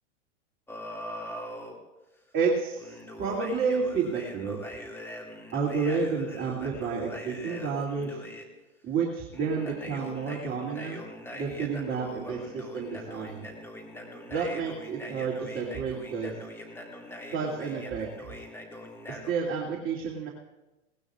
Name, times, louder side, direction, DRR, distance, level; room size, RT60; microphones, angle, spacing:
sound 1, 0.7-1.8 2.8-8.4 9.3-19.3, left 1 dB, 5° left, 2.4 m, -42 dB
voice 1, 2.3-4.6 5.5-8.2 8.8-11.0 11.3-13.4 14.3-16.3 17.3-18.1 19.1-20.3, right 5 dB, 35° right, -4 dB, 2.7 m, -30 dB
20.5 x 18.5 x 2.5 m, 1.0 s
hypercardioid pair, 105°, 36 cm